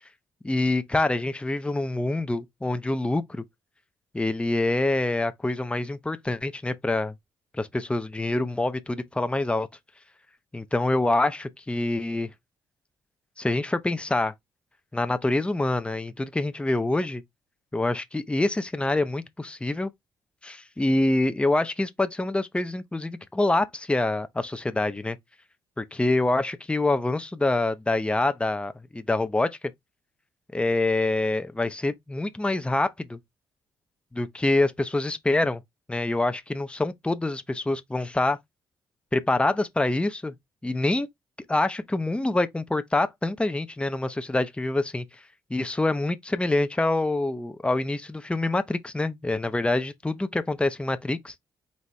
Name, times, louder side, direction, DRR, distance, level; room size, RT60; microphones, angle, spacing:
voice 1, 0.4-3.4 4.1-7.1 7.5-9.7 10.5-12.3 13.4-14.3 14.9-17.2 17.7-19.9 20.4-25.2 25.8-29.6 30.5-33.2 34.1-35.6 35.9-38.4 39.1-40.3 40.6-41.1 41.5-45.0 45.5-51.3, left 2 dB, 10° left, 0.6 m, -26 dB
4.2 x 3.3 x 3.1 m
hypercardioid pair, 50°, 10 cm